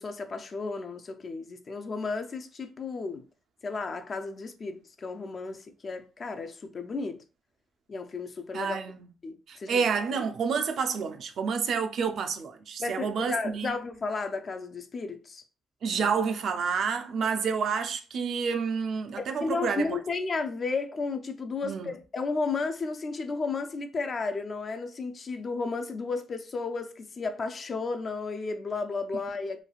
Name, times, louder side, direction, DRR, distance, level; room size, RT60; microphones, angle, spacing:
voice 1, 0.0-3.2 3.6-7.2 7.9-8.8 9.2-9.8 12.8-15.4 19.2-29.6, left 4 dB, 40° left, 0.4 m, -33 dB
voice 2, 8.5-9.0 9.5-13.7 15.8-20.0 21.6-21.9, right 6 dB, 65° right, 0.4 m, -29 dB
3.1 x 2.3 x 2.3 m
cardioid pair, 90°, 0 cm